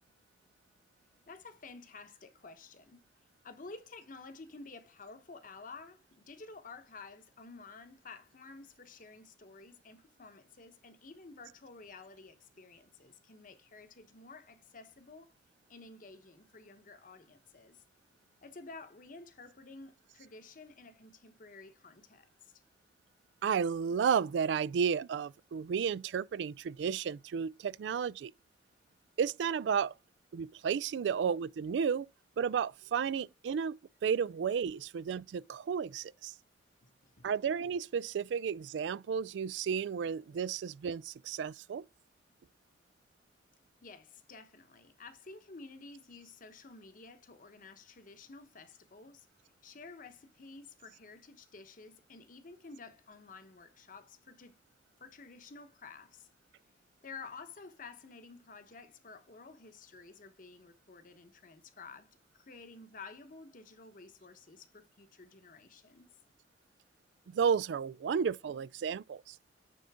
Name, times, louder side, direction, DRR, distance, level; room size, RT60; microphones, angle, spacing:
voice 1, 1.3-3.1 3.4-15.3 15.7-17.8 18.4-22.6 36.8-37.3 43.8-49.3 49.6-54.6 55.0-56.3 57.0-66.1, left 4 dB, 50° left, 0.9 m, -52 dB
voice 2, 23.4-28.3 29.2-29.9 30.3-32.1 32.4-36.3 37.2-41.8 67.3-69.4, right 7 dB, 85° right, 0.3 m, -32 dB
9.2 x 3.8 x 3.5 m
head